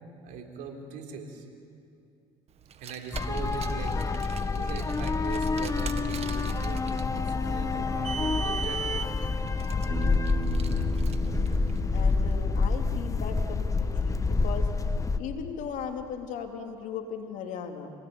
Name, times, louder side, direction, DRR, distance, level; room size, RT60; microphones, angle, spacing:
voice 1, 0.2-1.4 2.8-3.9 4.6-9.1 9.9-10.0, right 5 dB, 70° right, 3 dB, 4.2 m, -40 dB
Car, 2.6-12.1, right 7 dB, 50° right, 1.8 m, -40 dB
sound 1, 3.1-15.2, left 3 dB, 25° left, 1.3 m, -28 dB
Bass guitar, 9.9-14.2, right 5 dB, 25° right, 3.4 m, -41 dB
voice 2, 11.9-14.7 15.2-17.9, left 6 dB, 65° left, 3 dB, 3.3 m, -37 dB
28.5 x 18.5 x 9.7 m, 2.5 s
supercardioid pair, 75°, 14 cm